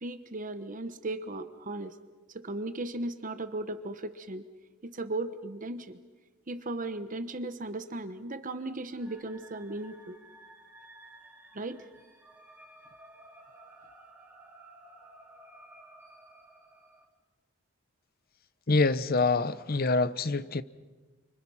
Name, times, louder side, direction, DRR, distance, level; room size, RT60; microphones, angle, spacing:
voice 1, 0.0-1.9 2.3-4.4 4.8-6.0 6.5-10.2 11.5-11.8, right 2 dB, 40° right, 1.1 m, -36 dB
sound 1, 8.9-17.1, right 1 dB, 10° right, 2.4 m, -54 dB
voice 2, 18.7-20.6, left 3 dB, 45° left, 0.8 m, -26 dB
29.5 x 25.0 x 5.7 m
head